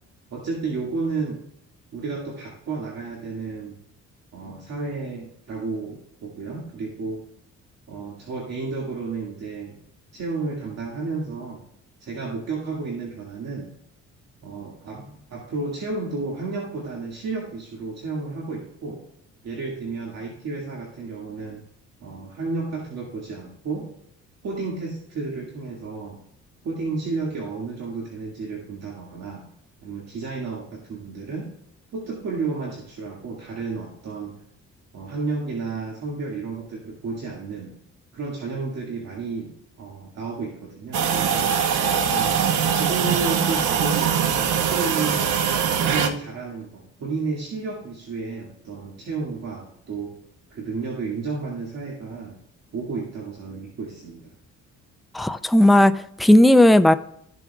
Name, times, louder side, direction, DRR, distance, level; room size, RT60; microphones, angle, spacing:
voice 1, 0.3-1.4 1.9-3.8 4.3-7.2 7.9-9.8 10.1-11.6 12.0-13.7 14.4-19.0 19.4-21.6 22.0-23.9 24.4-26.2 26.6-29.4 29.8-31.5 31.9-34.4 34.9-37.7 38.1-41.8 42.1-42.4 42.7-45.3 45.8-50.1 50.5-52.4 52.7-54.3, right 4 dB, 60° right, -3 dB, 2.1 m, -32 dB
sound 1, 40.9-46.1, right 7 dB, 85° right, 1.0 m, -22 dB
voice 2, 55.1-56.9, left 1 dB, ahead, 10 dB, 0.4 m, -15 dB
13.5 x 7.0 x 2.4 m, 0.72 s
cardioid pair, 90°, 30 cm